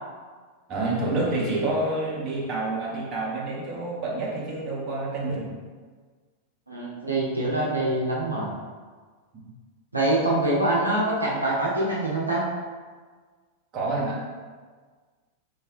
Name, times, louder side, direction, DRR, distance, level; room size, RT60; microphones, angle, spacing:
voice 1, 0.7-5.5 9.3-9.5 13.7-14.3, right 2 dB, 35° right, -4 dB, 0.6 m, -28 dB
voice 2, 6.7-8.5 9.9-12.5, right 1 dB, 85° right, -5 dB, 0.4 m, -24 dB
2.6 x 2.0 x 2.5 m, 1.5 s
figure-of-eight pair, 90°, 0 cm